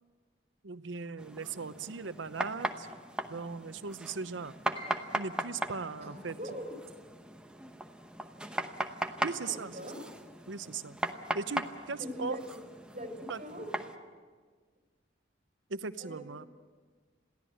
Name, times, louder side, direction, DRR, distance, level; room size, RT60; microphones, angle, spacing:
voice 1, 0.6-2.9 3.3-4.6 5.2-6.5 9.2-9.9 10.5-11.0 11.3-12.4 13.3-13.4 15.7-16.5, right 4 dB, 90° right, 12 dB, 0.8 m, -38 dB
sound 1, 1.2-14.0, right 1 dB, 5° right, 0.9 m, -39 dB
Piano, 4.7-10.7 11.0-12.2 12.6-12.7 13.4-13.7, equal, 30° left, 6.8 m, -56 dB
voice 2, 6.4-6.7 9.4-10.0 12.0-12.6 12.9-14.0 16.0-16.2, equal, 35° right, 4 dB, 4.6 m, -41 dB
22.5 x 16.0 x 8.7 m, 1.5 s
head